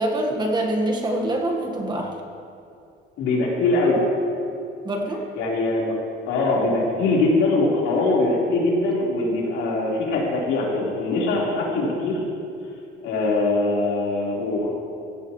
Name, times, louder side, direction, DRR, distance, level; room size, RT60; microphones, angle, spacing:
voice 1, 0.0-2.1 4.8-5.2, right 1 dB, 20° right, 1 dB, 1.5 m, -24 dB
voice 2, 3.2-4.0 5.4-5.9 6.3-12.2 13.0-14.7, left 2 dB, 85° left, -5 dB, 4.2 m, -22 dB
17.0 x 16.0 x 3.2 m, 2.5 s
cardioid pair, 155°, 20 cm